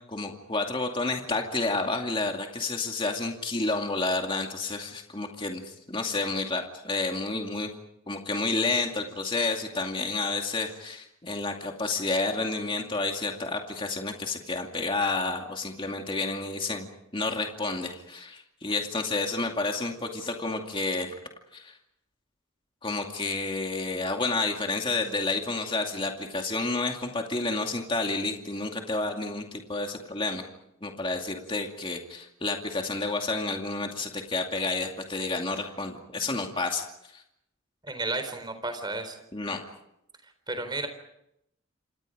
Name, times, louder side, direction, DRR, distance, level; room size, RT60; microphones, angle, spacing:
voice 1, 0.1-7.7 8.1-16.9 17.1-21.1 21.5-21.7 22.8-30.4 30.8-36.8 37.1-37.2 39.3-39.6, left 3 dB, 25° left, 2 dB, 2.4 m, -30 dB
voice 2, 37.8-39.2 40.5-40.9, right 2 dB, 20° right, 8 dB, 4.0 m, -32 dB
28.5 x 27.0 x 5.1 m, 0.79 s
head